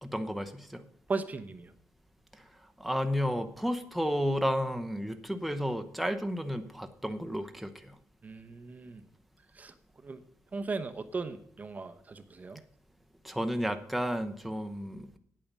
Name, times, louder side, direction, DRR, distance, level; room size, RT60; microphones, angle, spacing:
voice 1, 0.0-0.8 2.4-2.5 2.8-7.9 13.2-15.1, equal, ahead, 7 dB, 0.8 m, -32 dB
voice 2, 1.1-1.7 8.2-9.0 9.6-9.7 10.0-10.2 10.5-12.6, right 4 dB, 30° right, 9 dB, 0.8 m, -37 dB
8.8 x 8.6 x 7.3 m, 0.65 s
cardioid pair, 120°, 6 cm